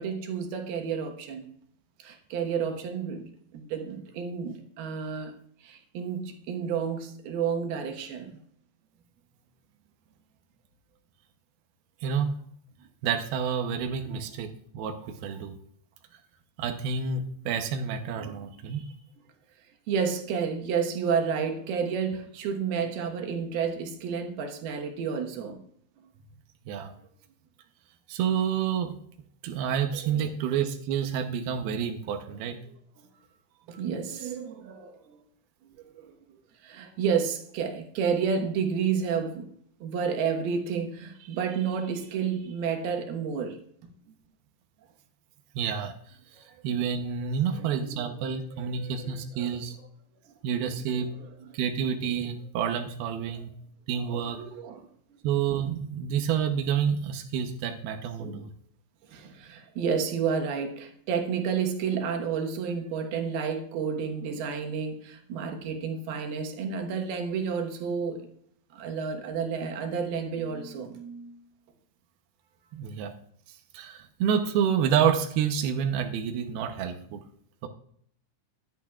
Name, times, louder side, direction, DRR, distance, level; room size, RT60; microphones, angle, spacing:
voice 1, 0.0-1.4 2.0-5.3 5.6-8.4 14.0-14.1 18.2-18.9 19.9-25.6 30.0-30.3 32.1-32.4 32.7-32.8 33.7-35.2 35.9-36.1 36.6-39.5 39.8-43.9 47.6-49.5 50.9-51.3 53.3-53.5 54.0-54.9 58.2-58.5 59.1-68.3 68.7-71.4, right 6 dB, 65° right, 4 dB, 2.7 m, -31 dB
voice 2, 13.0-15.5 16.6-18.8 26.7-26.9 28.1-29.0 29.4-32.6 45.6-45.9 46.6-49.8 50.4-51.1 51.5-53.5 53.9-54.4 55.2-58.5 72.7-73.1 73.7-77.2, right 7 dB, 85° right, 4 dB, 2.1 m, -28 dB
19.0 x 11.0 x 2.4 m, 0.64 s
omnidirectional pair, 5.7 m